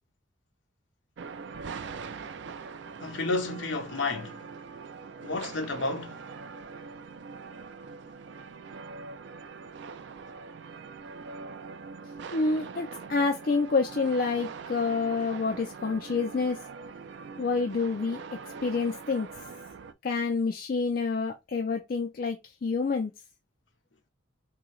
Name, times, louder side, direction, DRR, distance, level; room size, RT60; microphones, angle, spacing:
sound 1, 1.2-19.9, right 5 dB, 55° right, 0.3 m, -42 dB
voice 1, 3.0-4.4 5.2-6.2, left 3 dB, 65° left, 1.0 m, -31 dB
voice 2, 12.3-16.6 17.4-18.2 18.6-19.3 20.0-23.1, left 4 dB, 45° left, 0.4 m, -28 dB
3.8 x 2.8 x 3.1 m
head